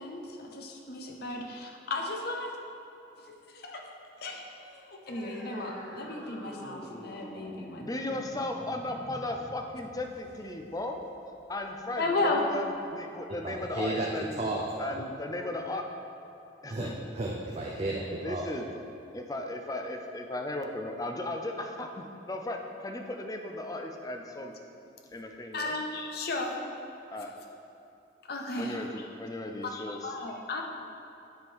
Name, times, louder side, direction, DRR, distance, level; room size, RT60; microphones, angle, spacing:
voice 1, 0.0-2.5 3.5-3.8 4.2-7.8 12.0-12.4 25.5-26.5 28.3-29.1 29.7-30.6, left 2 dB, 55° left, 1 dB, 0.7 m, -34 dB
sound 1, 5.1-12.1, equal, ahead, 1.1 m, -46 dB
voice 2, 7.8-11.0 11.5-14.4 14.8-15.8 16.6-17.0 18.2-18.7 19.1-24.6 25.1-25.8 27.1-27.3 28.6-30.1, left 1 dB, 20° left, 3 dB, 0.4 m, -36 dB
voice 3, 13.4-14.9 16.7-18.5, right 2 dB, 35° right, -2 dB, 0.5 m, -33 dB
9.4 x 3.7 x 4.6 m, 2.8 s
head